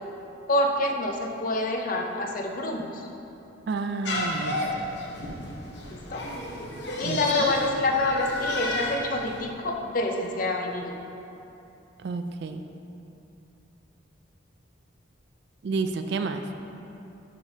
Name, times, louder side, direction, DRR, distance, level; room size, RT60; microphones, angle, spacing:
voice 1, 0.5-2.9 5.9-6.2 7.0-10.9, left 2 dB, 40° left, 2 dB, 0.5 m, -27 dB
voice 2, 3.7-4.9 7.0-7.6 12.0-12.6 15.6-16.4, right 4 dB, 55° right, 8 dB, 0.3 m, -30 dB
sound 1, 4.0-9.4, left 1 dB, 60° left, 0.9 m, -32 dB
10.5 x 5.1 x 2.7 m, 2.9 s
head